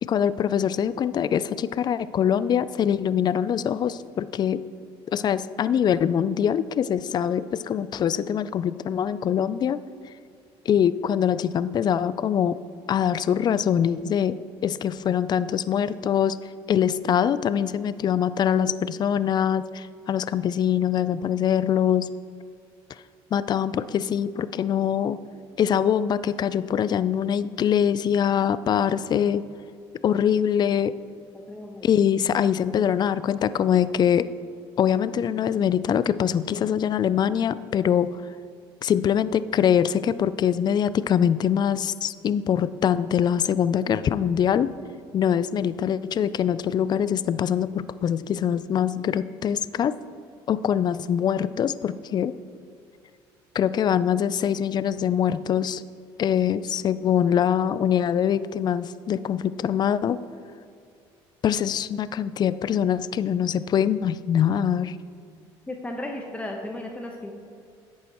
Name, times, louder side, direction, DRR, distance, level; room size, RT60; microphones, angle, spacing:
voice 1, 0.0-4.6 5.1-9.8 10.7-12.6 12.9-16.4 16.7-22.1 23.3-25.2 25.6-29.4 30.0-30.9 31.8-34.3 34.8-38.2 38.8-44.7 45.1-49.9 50.5-52.3 53.5-55.8 56.2-60.2 61.4-65.0, left 9 dB, 40° left, 15 dB, 0.3 m, -23 dB
voice 2, 31.5-32.3 65.7-67.3, left 1 dB, 10° left, 1 dB, 0.9 m, -35 dB
11.0 x 8.3 x 3.0 m, 2.4 s
supercardioid pair, 95°, 11 cm